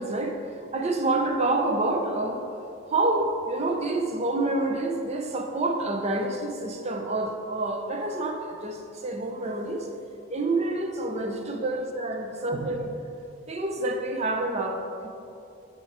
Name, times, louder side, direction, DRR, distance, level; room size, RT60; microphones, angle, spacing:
voice 1, 0.0-2.4 2.9-9.9 10.3-12.9 13.5-15.1, right 2 dB, 30° right, 4 dB, 0.6 m, -28 dB
9.1 x 4.8 x 4.3 m, 2.7 s
head